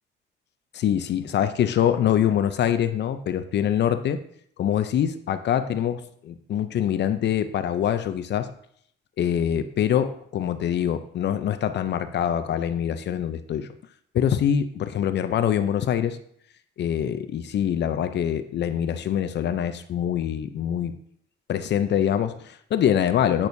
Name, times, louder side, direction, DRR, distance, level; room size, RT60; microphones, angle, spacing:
voice 1, 0.7-4.2 4.6-8.5 9.2-13.7 14.1-16.2 16.8-20.9 21.5-23.5, left 9 dB, 60° left, 11 dB, 0.6 m, -24 dB
8.6 x 6.1 x 2.7 m, 0.65 s
cardioid pair, 90°, 20 cm